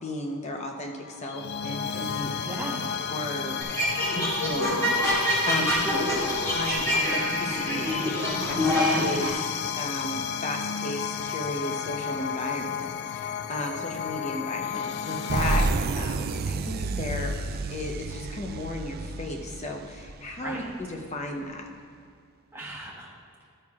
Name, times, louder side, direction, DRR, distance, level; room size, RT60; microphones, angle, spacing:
voice 1, 0.0-2.3 3.1-3.6 4.1-6.1 6.5-9.5 9.8-17.3 17.7-21.7, left 1 dB, 30° left, 2 dB, 0.8 m, -34 dB
sound 1, 1.0-15.7, left 7 dB, 50° left, 0.3 m, -32 dB
voice 2, 2.4-2.8 5.6-6.2 15.1-15.3 20.4-20.9 22.5-23.1, right 1 dB, 10° right, -5 dB, 1.3 m, -38 dB
sound 2, 3.6-9.3, equal, 15° left, 2.2 m, -26 dB
sound 3, 15.3-20.8, right 3 dB, 45° right, 0.3 m, -30 dB
12.0 x 9.2 x 2.4 m, 2.2 s
head